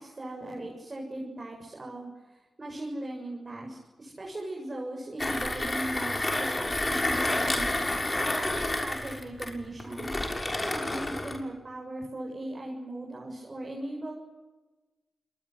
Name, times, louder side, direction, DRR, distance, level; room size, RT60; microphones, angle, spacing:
voice 1, 0.0-10.1 10.4-14.1, right 1 dB, 40° right, 0 dB, 7.3 m, -38 dB
Mechanisms, 5.2-11.4, left 1 dB, 30° left, 6.7 m, -29 dB
27.0 x 22.0 x 7.9 m, 1.2 s
supercardioid pair, 40°, 0 cm